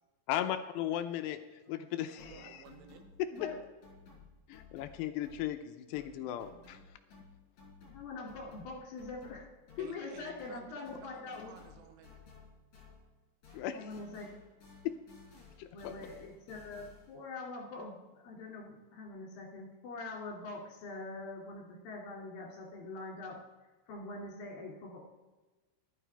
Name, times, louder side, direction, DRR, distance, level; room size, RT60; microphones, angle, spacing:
voice 1, 0.3-1.4 1.7-2.6 3.2-3.3 4.5-6.8 13.5-13.8 14.8-15.0 15.6-15.9, left 11 dB, 80° left, 9 dB, 2.7 m, -36 dB
sound 1, 2.2-5.7 5.9-13.2 13.4-17.2, left 4 dB, 45° left, 5.6 m, -57 dB
voice 2, 2.2-3.0 9.8-12.3, right 8 dB, 80° right, 7 dB, 3.1 m, -54 dB
voice 3, 7.9-9.5 9.8-11.5 13.7-14.3 15.7-23.4 23.9-25.0, left 3 dB, 60° left, -2 dB, 4.0 m, -44 dB
14.0 x 12.0 x 3.4 m, 1.2 s
omnidirectional pair, 4.9 m